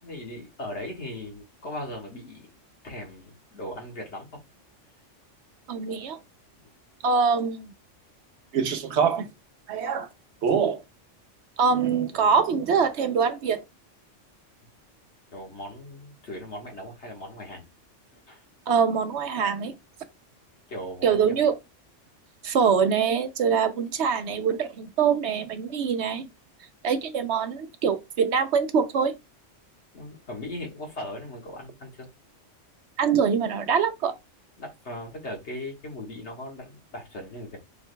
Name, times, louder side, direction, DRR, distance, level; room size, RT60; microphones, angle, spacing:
voice 1, 0.0-2.5 2.8-4.3 6.5-6.7 15.3-17.7 18.1-18.4 20.7-21.4 29.9-32.1 34.6-37.6, left 1 dB, 60° left, 1.8 m, -38 dB
voice 2, 5.7-6.2 7.0-7.6 8.5-9.3 9.7-10.1 10.4-10.8 11.6-13.6 18.7-19.8 21.0-21.6 22.4-26.3 26.8-29.1 33.0-34.2, right 6 dB, 65° right, 0.9 m, -24 dB
4.8 x 4.7 x 2.2 m
omnidirectional pair, 1.3 m